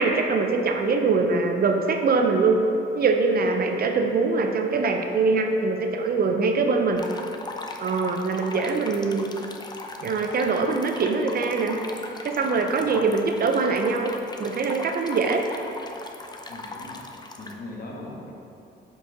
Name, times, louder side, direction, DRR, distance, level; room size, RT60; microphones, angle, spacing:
voice 1, 0.0-2.7 2.9-7.0 7.8-9.3 10.0-11.8 12.2-14.1 14.4-15.4, right 4 dB, 50° right, 4 dB, 0.6 m, -23 dB
sound 1, 7.0-17.5, left 2 dB, 20° left, 0.6 m, -39 dB
voice 2, 16.5-17.0 17.4-18.3, left 2 dB, 50° left, -2 dB, 1.4 m, -40 dB
7.8 x 4.8 x 3.8 m, 2.6 s
cardioid pair, 90°, 20 cm